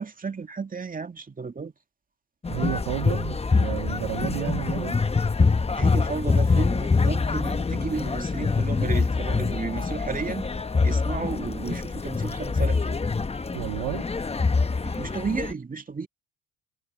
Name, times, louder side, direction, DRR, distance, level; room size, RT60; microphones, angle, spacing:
voice 1, 0.0-1.7 5.8-10.5 10.8-13.0 14.8-16.1, right 5 dB, 25° right, 2.3 m, -33 dB
sound 1, 2.4-15.5, left 4 dB, 15° left, 1.1 m, -25 dB
voice 2, 2.5-4.9 13.5-14.0, right 27 dB, 70° right, 0.7 m, -31 dB
hypercardioid pair, 65°, 35 cm